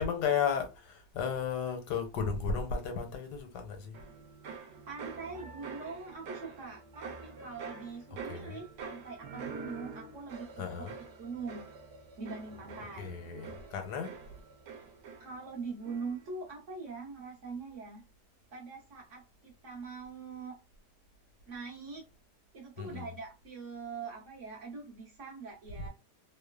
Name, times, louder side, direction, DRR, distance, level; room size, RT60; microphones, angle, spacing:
voice 1, 0.0-4.0 8.3-8.6 10.6-11.0 13.0-14.1 22.8-23.1, left 6 dB, 85° left, 1.3 m, -34 dB
sound 1, 3.9-15.6 15.8-16.4, right 5 dB, 75° right, 1.2 m, -46 dB
voice 2, 4.9-10.7 11.2-11.7 12.2-13.2 13.7-14.1 15.2-18.0 18.5-20.6 21.5-22.0 22.5-25.9, right 4 dB, 55° right, 1.0 m, -43 dB
3.1 x 2.1 x 2.2 m
omnidirectional pair, 1.8 m